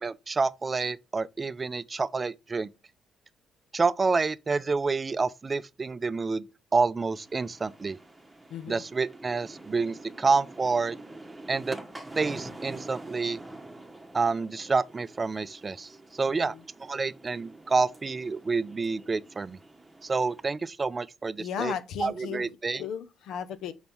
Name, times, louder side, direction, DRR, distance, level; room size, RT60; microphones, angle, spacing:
voice 1, 0.0-2.7 3.7-6.5 6.7-8.0 8.7-11.0 11.5-11.8 12.2-13.4 14.1-16.5 16.8-19.6 20.0-21.7 22.0-22.8, right 4 dB, 30° right, 0.4 m, -28 dB
sound 1, 7.0-20.5, right 2 dB, 15° right, 1.0 m, -46 dB
voice 2, 8.5-8.8 16.4-16.6 21.4-23.7, left 8 dB, 80° left, 0.7 m, -36 dB
5.3 x 4.0 x 4.5 m
cardioid pair, 90°, 0 cm